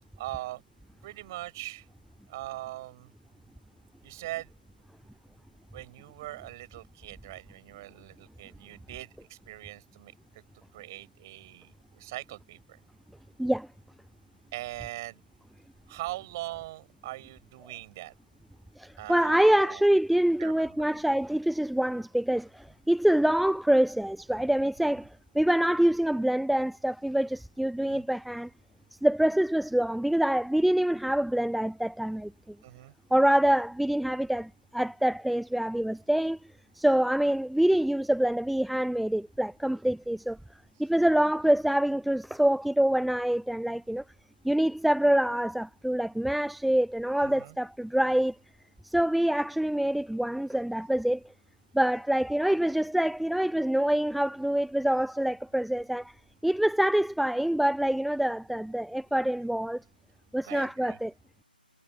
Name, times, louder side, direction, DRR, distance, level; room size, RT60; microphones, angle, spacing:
voice 1, 0.2-0.6 1.0-1.9 2.3-3.1 4.0-4.5 5.7-10.1 10.7-12.6 14.5-15.2 15.9-18.1 19.0-19.8 20.4-21.0 27.8-28.0 32.6-32.9 47.2-47.6 60.4-61.0, right 17 dB, 20° right, 6.2 m, -41 dB
voice 2, 18.8-28.5 29.0-32.6 33.1-36.4 36.7-40.4 40.8-44.0 44.4-48.4 48.8-51.2 51.7-56.1 56.4-59.8 60.3-61.1, right 1 dB, ahead, 0.5 m, -25 dB
figure-of-eight pair, 150°, 5 cm